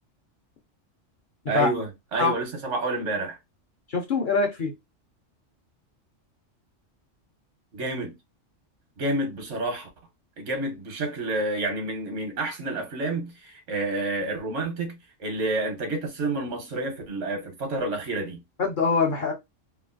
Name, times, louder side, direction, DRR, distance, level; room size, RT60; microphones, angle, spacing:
voice 1, 1.5-3.4 7.7-8.1 9.0-9.9 10.4-18.4, right 2 dB, 80° right, 1.3 m, -29 dB
voice 2, 3.9-4.7 18.6-19.3, left 4 dB, 50° left, 0.7 m, -23 dB
3.1 x 2.4 x 2.4 m
omnidirectional pair, 1.2 m